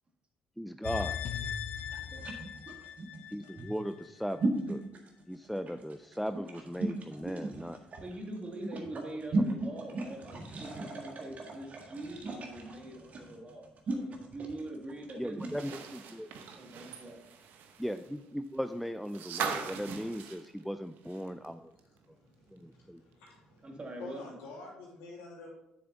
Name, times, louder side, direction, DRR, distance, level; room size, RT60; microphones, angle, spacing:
voice 1, 0.6-1.2 3.3-4.4 4.7-4.8 5.3-7.8 15.2-16.3 17.8-21.7 22.5-23.0, equal, ahead, 9 dB, 0.4 m, -37 dB
sound 1, 0.8-4.1 4.4-4.5, left 8 dB, 60° left, 0.7 m, -39 dB
sound 2, 0.9-15.6, right 2 dB, 50° right, 1.7 m, -37 dB
voice 2, 1.9-2.2 8.0-15.8 16.5-17.2 23.6-24.3, right 1 dB, 35° right, 2 dB, 1.9 m, -43 dB
sound 3, 15.4-21.5 21.8-21.9 23.3-23.4, right 7 dB, 70° right, 0.9 m, -41 dB
voice 3, 22.0-23.7 24.0-25.5, left 3 dB, 80° left, -3 dB, 2.7 m, -48 dB
7.8 x 6.8 x 3.8 m, 0.88 s
hypercardioid pair, 55°, 3 cm